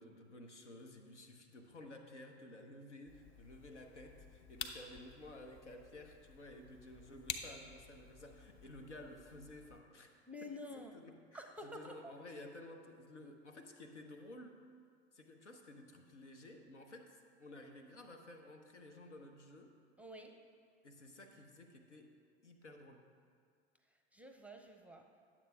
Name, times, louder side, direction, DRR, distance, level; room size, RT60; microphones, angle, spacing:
voice 1, 0.0-10.5 10.8-14.6 15.1-19.7 20.8-22.1 22.4-23.1, left 1 dB, 85° left, 4 dB, 0.9 m, -54 dB
sound 1, 3.1-9.8, left 6 dB, 35° left, 0.7 m, -50 dB
voice 2, 10.3-11.0 11.3-12.1 20.0-20.3 24.1-25.1, left 1 dB, 5° right, 4 dB, 0.6 m, -49 dB
10.0 x 7.3 x 3.4 m, 2.1 s
figure-of-eight pair, 80°, 34 cm